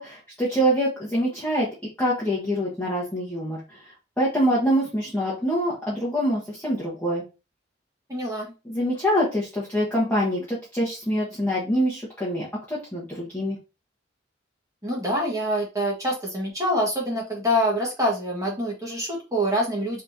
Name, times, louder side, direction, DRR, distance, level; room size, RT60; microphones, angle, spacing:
voice 1, 0.0-1.7 2.0-3.8 4.2-7.2 8.6-13.6, equal, 10° left, -8 dB, 1.1 m, -25 dB
voice 2, 8.1-8.5 14.8-20.0, equal, 15° right, -3 dB, 1.4 m, -25 dB
4.2 x 3.6 x 2.7 m, 0.29 s
head